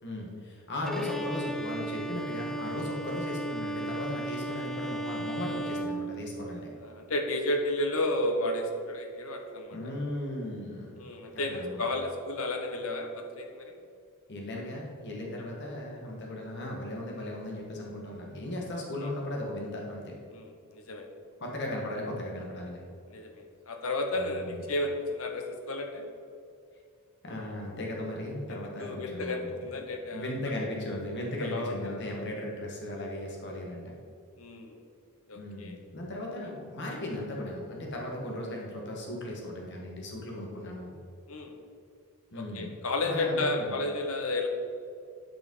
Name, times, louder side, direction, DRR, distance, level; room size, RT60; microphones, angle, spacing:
voice 1, 0.0-6.6 9.7-11.1 11.3-11.8 14.3-20.1 21.4-22.8 24.2-24.6 27.2-29.5 30.1-33.9 35.3-40.9 42.3-42.7 43.0-43.8, left 1 dB, 55° left, -1 dB, 1.7 m, -36 dB
Bowed string instrument, 0.9-6.8, right 2 dB, ahead, 0.5 m, -36 dB
voice 2, 6.5-9.8 10.9-13.8 15.3-15.4 20.3-21.1 23.1-26.0 28.5-30.3 31.4-32.3 34.4-34.9 35.3-35.8 36.4-36.5 41.3-41.5 42.3-44.5, left 2 dB, 70° left, 4 dB, 1.1 m, -33 dB
9.3 x 5.1 x 5.4 m, 2.4 s
head